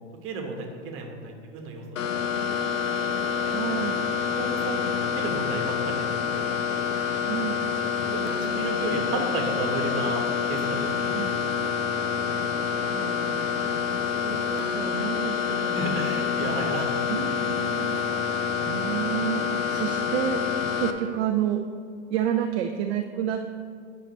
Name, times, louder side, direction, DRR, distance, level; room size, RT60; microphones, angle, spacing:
voice 1, 0.2-2.1 2.8-3.0 4.3-6.1 6.3-6.5 7.4-10.2 10.5-11.1 11.4-11.5 15.7-16.9, right 3 dB, 35° right, 2 dB, 1.4 m, -33 dB
sound 1, 2.0-20.9, left 7 dB, 85° left, 0.7 m, -27 dB
voice 2, 3.5-4.0 7.3-7.6 11.1-11.4 12.9-15.9 16.4-20.4 20.8-21.6 22.1-23.7, right 10 dB, 60° right, 5 dB, 0.6 m, -31 dB
10.0 x 5.7 x 3.1 m, 2.3 s
hypercardioid pair, 115°, 37 cm